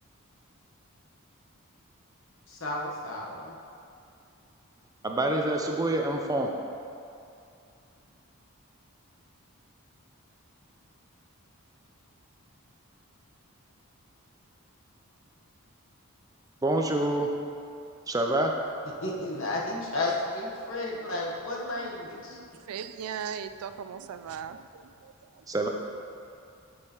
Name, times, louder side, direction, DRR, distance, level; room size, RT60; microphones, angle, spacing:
voice 1, 2.5-3.5 19.0-22.4, left 2 dB, 65° left, -3 dB, 1.1 m, -32 dB
voice 2, 5.0-6.5 16.6-17.3 18.1-18.5 25.5-25.7, right 1 dB, 15° right, 2 dB, 0.4 m, -26 dB
voice 3, 21.7-25.4, right 7 dB, 85° right, 11 dB, 0.3 m, -39 dB
9.8 x 6.4 x 3.0 m, 2.5 s
head